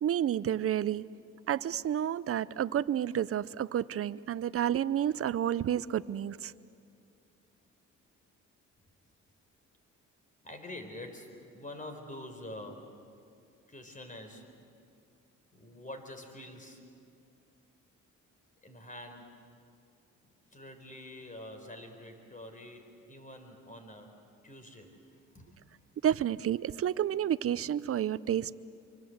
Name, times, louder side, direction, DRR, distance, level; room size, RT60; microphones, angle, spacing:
voice 1, 0.0-1.0 1.5-6.5 26.0-28.5, right 10 dB, 50° right, 16 dB, 0.7 m, -30 dB
voice 2, 10.4-12.9 13.7-14.6 15.5-16.8 18.6-19.4 20.2-25.0 25.3-25.6, left 1 dB, 25° left, 6 dB, 4.5 m, -46 dB
26.0 x 24.5 x 8.0 m, 2.4 s
cardioid pair, 90°, 30 cm